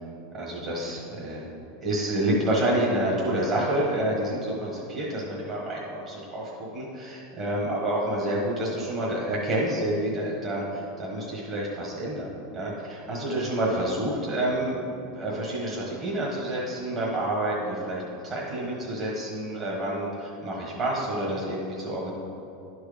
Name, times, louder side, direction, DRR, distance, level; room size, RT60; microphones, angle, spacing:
voice 1, 0.3-1.5 1.8-22.1, right 1 dB, 35° right, -5 dB, 1.3 m, -28 dB
11.0 x 4.7 x 5.1 m, 2.9 s
supercardioid pair, 160°, 0 cm